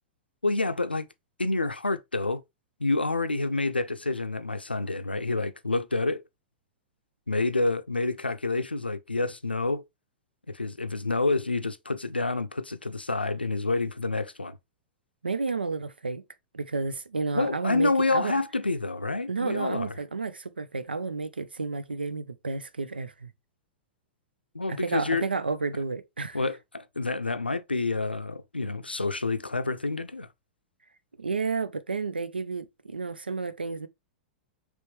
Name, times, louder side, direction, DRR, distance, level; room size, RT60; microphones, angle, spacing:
voice 1, 0.4-1.1 1.4-2.4 2.8-6.2 7.3-9.8 10.5-14.6 17.3-19.9 24.5-25.2 26.3-30.3, left 3 dB, 90° left, 0.5 m, -28 dB
voice 2, 15.2-16.2 16.5-18.3 19.3-23.3 24.7-26.4 31.2-33.9, right 4 dB, 80° right, 0.5 m, -31 dB
5.2 x 3.2 x 3.2 m
figure-of-eight pair, 100°, 5 cm